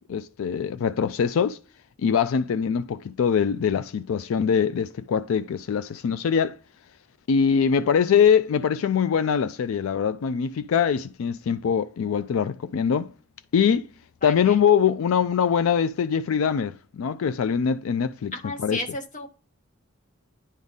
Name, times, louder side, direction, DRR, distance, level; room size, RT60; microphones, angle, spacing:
voice 1, 0.1-1.6 2.0-6.6 7.3-13.1 13.5-13.9 14.2-18.3 18.6-18.8, left 7 dB, 80° left, 0.4 m, -23 dB
voice 2, 14.2-14.6 18.3-19.3, left 2 dB, 40° left, 1.3 m, -33 dB
10.5 x 3.6 x 4.0 m
head